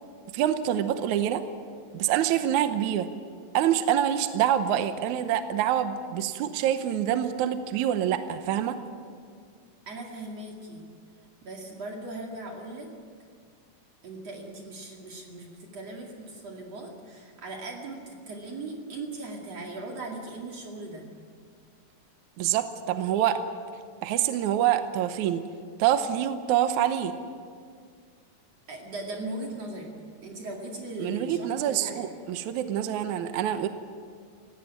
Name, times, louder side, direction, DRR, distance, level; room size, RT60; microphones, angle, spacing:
voice 1, 0.3-1.4 1.9-3.1 3.5-8.8 22.4-23.4 24.0-25.4 25.8-27.1 31.0-33.7, right 10 dB, 75° right, 9 dB, 2.2 m, -26 dB
voice 2, 9.9-10.9 11.4-12.9 14.0-21.1 28.7-29.9 30.2-32.1, right 2 dB, 50° right, 0 dB, 3.3 m, -38 dB
18.0 x 16.5 x 9.9 m, 2.1 s
omnidirectional pair, 3.8 m